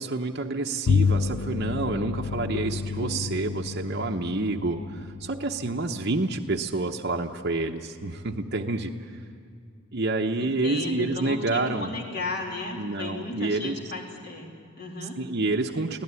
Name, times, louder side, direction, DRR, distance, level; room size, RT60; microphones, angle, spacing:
voice 1, 0.0-8.9 9.9-11.9 12.8-13.8 15.2-16.0, right 2 dB, 50° right, 2 dB, 0.9 m, -28 dB
Bowed string instrument, 0.9-6.5, left 5 dB, 70° left, 0.5 m, -29 dB
voice 2, 10.4-15.2, left 2 dB, 50° left, 0 dB, 3.4 m, -35 dB
25.0 x 16.5 x 9.7 m, 2.2 s
head